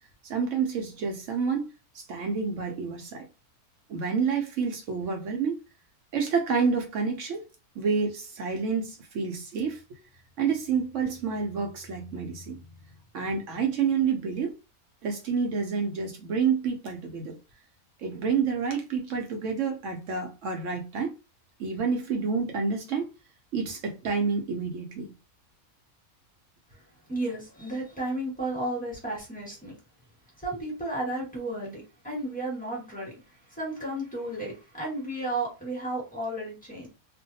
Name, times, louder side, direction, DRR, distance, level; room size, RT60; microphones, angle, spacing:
voice 1, 0.2-1.7 1.9-3.3 3.9-5.6 6.1-7.4 7.8-10.0 10.4-12.6 13.1-14.5 15.0-17.4 18.0-21.1 21.6-23.1 23.5-25.1, right 5 dB, 65° right, 0.8 m, -28 dB
voice 2, 27.1-29.7 30.4-33.1 33.5-36.9, right 1 dB, 5° left, 1.3 m, -33 dB
2.5 x 2.2 x 2.7 m
omnidirectional pair, 1.5 m